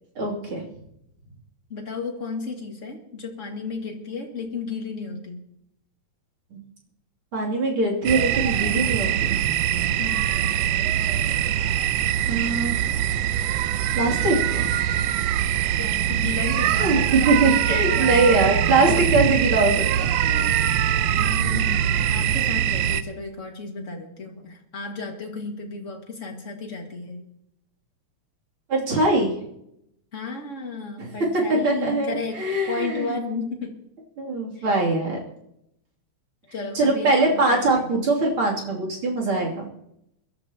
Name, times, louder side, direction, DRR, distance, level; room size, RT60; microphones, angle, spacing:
voice 1, 0.2-0.6 6.5-6.6 7.3-9.4 12.3-12.9 13.9-14.7 16.8-19.8 20.2-20.6 21.1-21.7 28.7-29.3 31.0-31.1 31.5-33.2 34.2-35.2 36.8-39.6, right 2 dB, 45° right, -2 dB, 3.6 m, -22 dB
voice 2, 1.7-5.5 10.0-10.5 15.8-17.0 17.4-19.0 21.4-27.3 30.1-33.8 34.6-34.7 36.5-38.0, left 4 dB, 30° left, 1 dB, 1.9 m, -34 dB
sound 1, 8.1-23.0, right 10 dB, 75° right, 1.6 m, -23 dB
23.0 x 13.0 x 2.9 m, 0.79 s
omnidirectional pair, 3.4 m